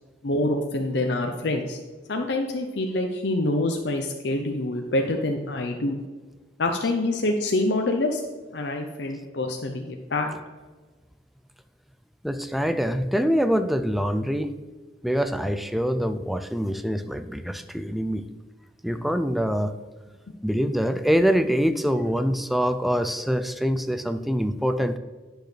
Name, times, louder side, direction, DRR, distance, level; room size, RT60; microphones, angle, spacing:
voice 1, 0.2-1.8 2.1-6.0 6.6-8.2 8.5-10.3, left 2 dB, 65° left, 3 dB, 0.6 m, -26 dB
voice 2, 12.2-14.5 15.0-18.2 18.8-19.7 20.4-25.0, equal, ahead, 10 dB, 0.3 m, -24 dB
10.5 x 6.3 x 3.2 m, 1.4 s
head